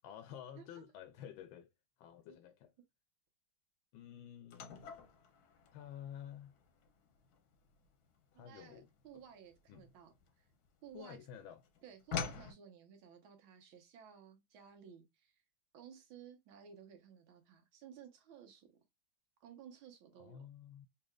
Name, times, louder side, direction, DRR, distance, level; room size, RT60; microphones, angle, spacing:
voice 1, 0.0-1.7 2.0-2.7 3.9-4.8 5.7-6.6 8.3-8.9 9.1-9.2 9.7-9.9 10.9-11.6 20.2-20.9, left 9 dB, 80° left, 1.3 m, -51 dB
sound 1, 4.5-11.0 11.3-12.5, left 6 dB, 60° left, 1.1 m, -46 dB
voice 2, 8.3-10.4 10.8-11.2 11.8-15.4 15.7-18.7 19.4-20.5, right 8 dB, 85° right, 1.7 m, -56 dB
4.1 x 2.8 x 2.3 m
omnidirectional pair, 2.2 m